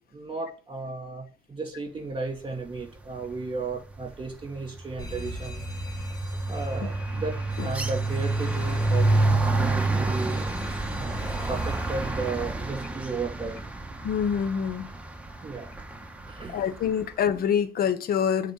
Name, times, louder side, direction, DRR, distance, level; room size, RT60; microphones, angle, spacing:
voice 1, 0.1-1.2 1.5-5.6 6.5-9.1 9.4-10.4 11.0-13.6 15.4-15.7 16.3-16.6, right 4 dB, 30° right, 2.7 m, -34 dB
sound 1, 3.1-3.5 3.7-16.9, right 2 dB, 10° right, 1.2 m, -29 dB
Alarm, 5.0-12.7, left 1 dB, 25° left, 1.8 m, -44 dB
voice 2, 14.0-14.9 16.5-18.5, left 8 dB, 65° left, 0.8 m, -26 dB
9.4 x 4.2 x 3.9 m
cardioid pair, 85°, 17 cm